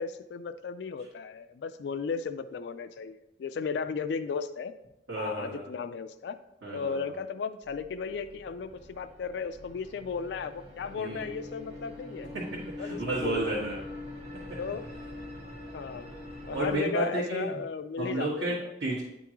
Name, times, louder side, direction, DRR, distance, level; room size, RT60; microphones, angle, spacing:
voice 1, 0.0-4.7 5.2-6.4 6.7-12.3 12.8-13.6 14.6-14.9 15.7-16.1 16.5-18.7, left 5 dB, 65° left, 10 dB, 0.3 m, -35 dB
voice 2, 5.1-5.6 6.6-7.0 10.9-11.3 12.3-13.8 16.5-17.5 18.0-19.0, right 2 dB, 70° right, -9 dB, 1.6 m, -32 dB
sound 1, 7.6-16.8, left 2 dB, 35° right, 1.4 m, -43 dB
10.0 x 3.6 x 3.0 m, 0.89 s
head